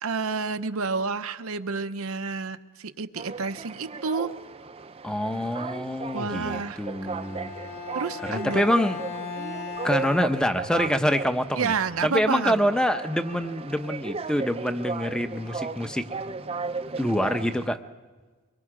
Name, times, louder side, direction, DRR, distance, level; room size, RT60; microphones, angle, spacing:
voice 1, 0.0-4.3 6.1-7.1 7.9-8.6 11.6-12.7, right 4 dB, 90° right, 9 dB, 0.8 m, -29 dB
sound 1, 3.2-17.7, right 4 dB, 30° right, 0.6 m, -36 dB
voice 2, 5.0-7.5 8.2-9.0 9.8-11.7 12.0-16.1 17.0-17.8, equal, 5° left, 9 dB, 0.8 m, -26 dB
Bowed string instrument, 7.0-11.1, left 4 dB, 50° left, 2.9 m, -38 dB
24.0 x 22.5 x 5.0 m, 1.3 s
head